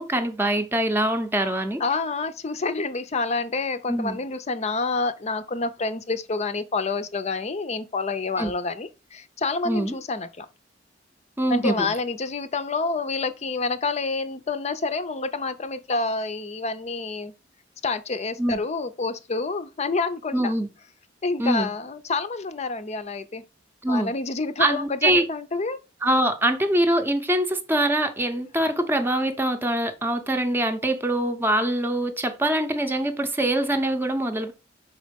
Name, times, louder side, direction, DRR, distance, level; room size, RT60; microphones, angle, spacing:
voice 1, 0.0-1.8 3.9-4.2 8.4-8.5 9.6-9.9 11.4-11.9 18.4-18.6 20.3-20.7 21.4-21.7 23.8-24.1 24.6-25.2 26.0-34.5, right 1 dB, 10° right, 0.7 m, -23 dB
voice 2, 1.8-10.5 11.5-17.3 17.8-20.5 21.2-23.4 23.9-25.8, left 3 dB, 35° left, 0.6 m, -28 dB
5.4 x 4.2 x 5.1 m
head